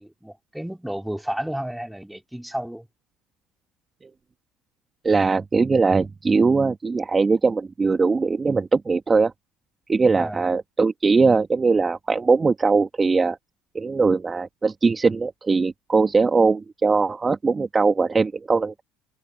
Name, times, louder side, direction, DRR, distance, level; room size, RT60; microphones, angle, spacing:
voice 1, 0.0-2.9 10.1-10.4, right 1 dB, 5° right, 3.7 m, -32 dB
voice 2, 5.0-9.3 9.9-13.4 13.7-18.8, right 4 dB, 25° right, 2.0 m, -20 dB
hypercardioid pair, 70°, 0 cm